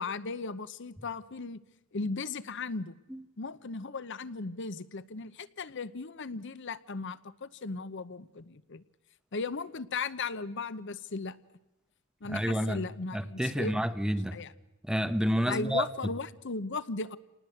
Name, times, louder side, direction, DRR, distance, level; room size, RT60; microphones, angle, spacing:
voice 1, 0.0-1.6 1.9-3.0 3.4-8.8 9.3-11.4 12.2-13.7 14.3-14.5 15.5-17.2, left 4 dB, 60° left, 16 dB, 0.8 m, -36 dB
voice 2, 12.3-12.9 13.1-14.4 14.8-15.9, equal, 5° right, 10 dB, 1.0 m, -29 dB
28.5 x 19.0 x 7.8 m, 0.97 s
head